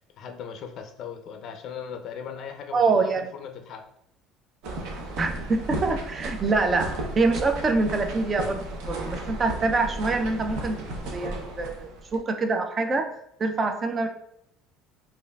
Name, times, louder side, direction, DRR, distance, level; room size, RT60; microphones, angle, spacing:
voice 1, 0.2-3.9, left 7 dB, 45° left, 6 dB, 0.4 m, -38 dB
voice 2, 2.7-3.3 5.2-10.8 11.1-13.1 13.4-14.1, right 3 dB, 25° right, 6 dB, 0.4 m, -25 dB
sound 1, 4.6-12.2, right 2 dB, 70° right, 0.8 m, -34 dB
5.1 x 2.4 x 2.3 m, 0.74 s
cardioid pair, 155°, 0 cm